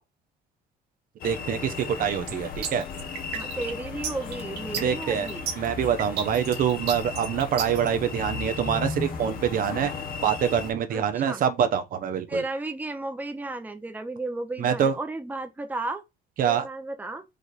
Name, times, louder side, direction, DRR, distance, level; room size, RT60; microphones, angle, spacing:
sound 1, 1.2-10.7, left 5 dB, 60° left, 1.1 m, -35 dB
voice 1, 1.2-2.8 4.8-5.3 5.6-9.9 10.2-12.4 14.6-14.9 16.4-16.6, right 8 dB, 55° right, 0.8 m, -25 dB
sound 2, 2.3-7.9, right 8 dB, 85° right, 1.5 m, -33 dB
voice 2, 3.3-5.5 10.9-11.4 12.3-16.0 16.4-17.2, right 2 dB, 10° right, 0.7 m, -33 dB
5.0 x 2.5 x 4.1 m
cardioid pair, 110°, 17 cm